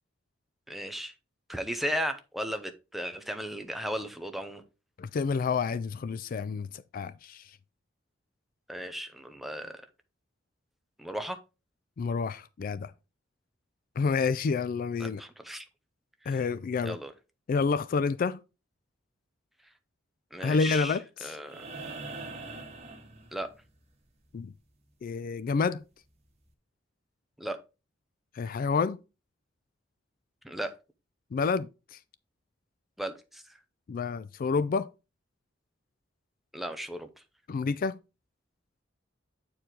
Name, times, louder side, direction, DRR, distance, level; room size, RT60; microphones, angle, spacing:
voice 1, 0.7-1.1 1.5-4.6 8.7-9.8 11.0-11.4 15.0-15.7 16.2-16.4 16.8-17.1 20.3-21.6 23.3-23.5 27.4-27.6 30.4-30.7 33.0-33.4 36.5-37.1, equal, ahead, 0.7 m, -35 dB
voice 2, 5.0-7.5 12.0-12.9 14.0-15.2 16.3-17.0 17.5-18.4 20.4-21.4 24.3-24.5 25.0-25.8 28.3-29.0 31.3-32.0 33.9-34.9 37.5-38.0, left 5 dB, 50° left, 0.3 m, -29 dB
sound 1, 21.4-23.8 25.6-25.7, right 3 dB, 35° right, 1.6 m, -42 dB
8.4 x 4.6 x 3.8 m
head